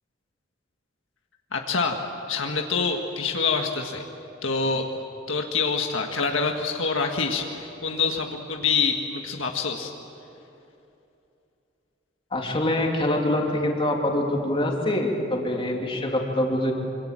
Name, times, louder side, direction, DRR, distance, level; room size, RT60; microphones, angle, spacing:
voice 1, 1.5-2.0 2.3-4.0 4.4-4.9 5.3-9.9, left 4 dB, 75° left, 2 dB, 1.7 m, -26 dB
voice 2, 12.3-16.7, left 1 dB, 30° left, 0 dB, 3.1 m, -25 dB
26.0 x 24.5 x 7.6 m, 2.8 s
head